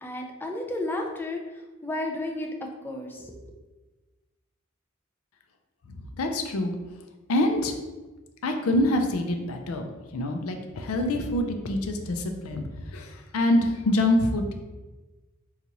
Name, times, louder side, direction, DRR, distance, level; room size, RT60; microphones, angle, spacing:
voice 1, 0.0-1.4 1.8-2.5 2.8-3.4, left 1 dB, 10° left, 1 dB, 0.3 m, -32 dB
voice 2, 5.9-6.8 7.3-7.7 8.4-9.9 10.1-12.6 12.9-14.5, left 1 dB, 90° left, 4 dB, 0.4 m, -25 dB
2.9 x 2.4 x 3.9 m, 1.2 s
head